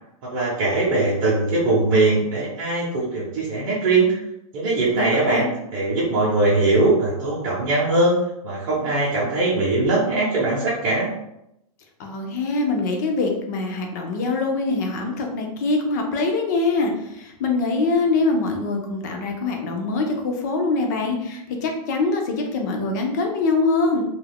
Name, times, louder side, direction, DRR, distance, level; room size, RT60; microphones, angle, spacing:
voice 1, 0.3-4.2 4.5-5.4 5.7-8.1 8.4-11.1, right 2 dB, 35° right, -8 dB, 0.6 m, -21 dB
voice 2, 4.9-5.5 12.0-24.0, left 3 dB, 30° left, 2 dB, 0.3 m, -23 dB
2.3 x 2.0 x 3.4 m, 0.82 s
hypercardioid pair, 165°, 19 cm